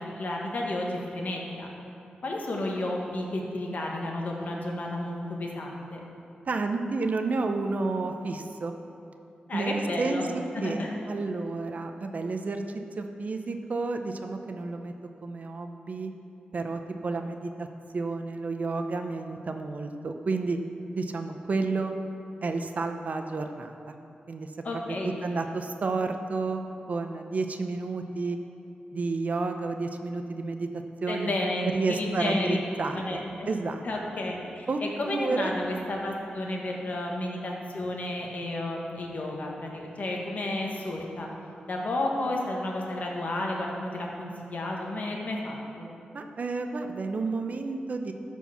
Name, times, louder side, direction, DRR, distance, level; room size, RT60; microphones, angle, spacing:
voice 1, 0.0-1.7 2.2-6.0 9.5-10.2 10.5-10.9 24.6-25.1 31.1-32.6 32.9-33.5 33.8-41.3 41.7-45.9, left 1 dB, 55° left, -1 dB, 1.5 m, -32 dB
voice 2, 6.4-8.7 9.5-12.6 13.0-14.9 15.2-16.1 16.5-17.7 17.9-20.6 20.9-22.0 22.4-23.8 24.3-26.6 26.9-28.4 28.9-30.7 31.0-31.4 31.7-33.9 34.7-34.8 35.1-35.5 46.1-48.1, right 3 dB, 50° right, 6 dB, 0.6 m, -31 dB
12.5 x 4.6 x 5.9 m, 2.7 s
wide cardioid pair, 100°, 3 cm